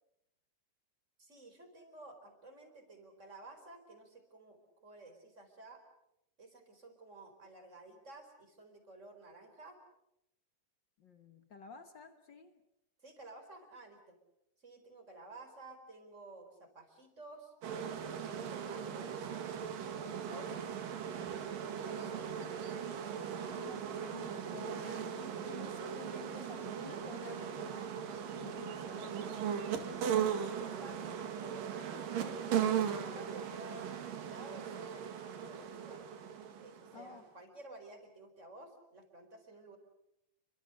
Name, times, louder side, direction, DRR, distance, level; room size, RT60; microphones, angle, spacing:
voice 1, 1.2-5.8 6.4-9.8 13.0-14.2 14.6-17.5 18.2-19.3 19.8-22.8 29.0-29.1 30.1-32.0 32.9-36.0 36.6-39.8, right 2 dB, 20° right, 6 dB, 4.4 m, -53 dB
voice 2, 11.0-12.6 20.3-20.5 23.5-27.9 28.4-29.7 36.9-37.3, left 6 dB, 65° left, 9 dB, 1.1 m, -51 dB
sound 1, 17.6-37.1, right 8 dB, 85° right, 3.7 m, -38 dB
28.5 x 24.5 x 6.6 m, 0.82 s
omnidirectional pair, 3.9 m